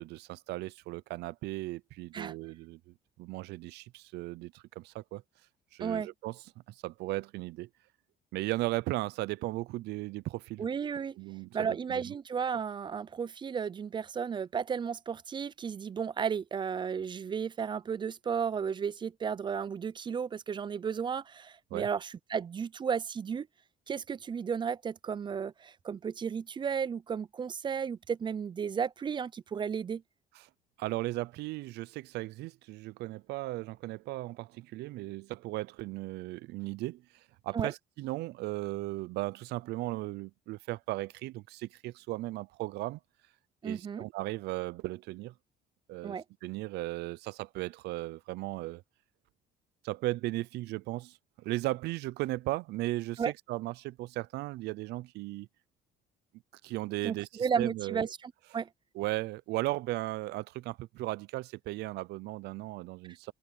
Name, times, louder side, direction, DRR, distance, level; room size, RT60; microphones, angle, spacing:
voice 1, 0.0-5.2 5.7-6.4 6.7-7.7 8.3-10.7 11.2-12.1 21.7-21.9 30.3-30.5 30.8-43.0 43.6-45.3 45.9-48.8 49.8-55.5 56.6-58.1 58.9-63.3, right 19 dB, 80° right, 0.5 m, -36 dB
voice 2, 10.6-11.2 11.5-23.5 23.9-30.0 37.5-37.7 43.6-44.0 46.0-46.2 53.2-53.3 57.0-58.7, right 7 dB, 30° right, 0.4 m, -33 dB
cardioid pair, 110°, 17 cm